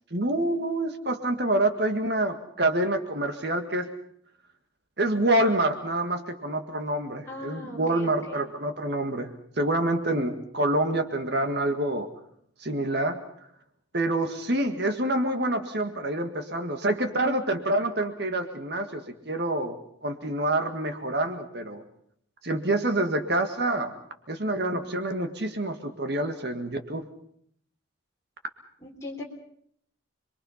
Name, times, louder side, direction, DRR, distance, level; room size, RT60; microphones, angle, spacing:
voice 1, 0.1-3.9 5.0-12.1 12.6-13.2 13.9-21.8 22.4-24.0 24.3-27.1, right 1 dB, 55° right, 7 dB, 1.8 m, -27 dB
voice 2, 7.3-8.4 28.8-29.2, left 1 dB, 15° left, -3 dB, 3.7 m, -39 dB
27.0 x 22.5 x 5.8 m, 0.67 s
head